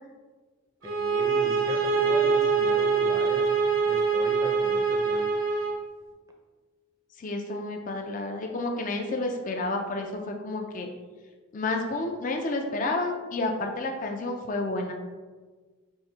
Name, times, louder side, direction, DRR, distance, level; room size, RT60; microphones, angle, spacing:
voice 1, 0.8-3.5 3.8-5.3, right 1 dB, 15° right, 1 dB, 0.5 m, -38 dB
sound 1, 0.8-5.8, right 5 dB, 70° right, 0.8 m, -24 dB
voice 2, 7.2-10.9 11.5-14.9, left 2 dB, 35° left, 3 dB, 0.4 m, -30 dB
4.6 x 3.2 x 3.2 m, 1.4 s
head